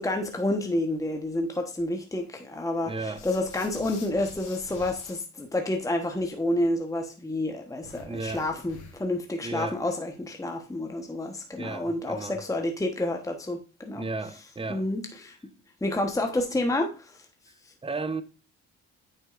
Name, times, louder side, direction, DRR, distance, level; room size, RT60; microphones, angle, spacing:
voice 1, 0.0-14.0 14.7-15.4 15.8-17.2, left 1 dB, 10° left, 1.1 m, -29 dB
voice 2, 2.8-3.2 8.0-8.4 9.4-9.8 11.6-12.4 13.9-14.9 17.8-18.2, right 3 dB, 20° right, 0.8 m, -34 dB
sound 1, 3.1-5.1 7.8-9.2, left 4 dB, 90° left, 2.8 m, -47 dB
9.2 x 5.5 x 2.5 m
cardioid pair, 90°, 30 cm